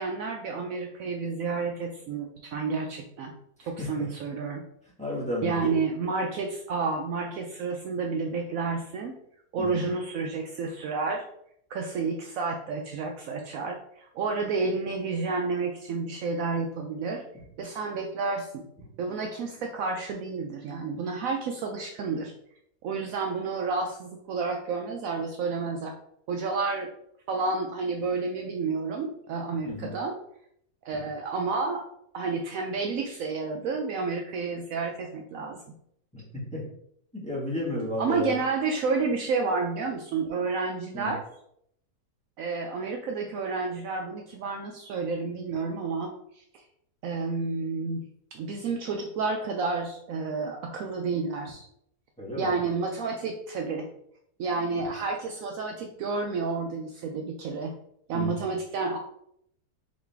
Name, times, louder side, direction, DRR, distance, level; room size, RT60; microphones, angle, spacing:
voice 1, 0.0-3.3 3.7-4.6 5.4-9.1 9.5-11.2 11.7-17.2 17.6-18.6 19.0-22.3 22.8-25.9 26.3-26.9 27.3-30.2 30.8-31.8 32.1-35.6 38.0-41.2 42.4-46.6 47.0-48.0 48.3-51.6 52.4-53.9 54.4-57.7 58.1-59.0, right 4 dB, 70° right, 3 dB, 0.9 m, -30 dB
voice 2, 5.0-5.7 9.6-9.8 29.6-29.9 36.1-36.2 36.5-36.6 37.1-38.4 40.9-41.1 52.2-52.5 58.1-58.5, left 1 dB, 5° left, -6 dB, 1.3 m, -32 dB
4.9 x 3.2 x 3.4 m, 0.72 s
omnidirectional pair, 1.6 m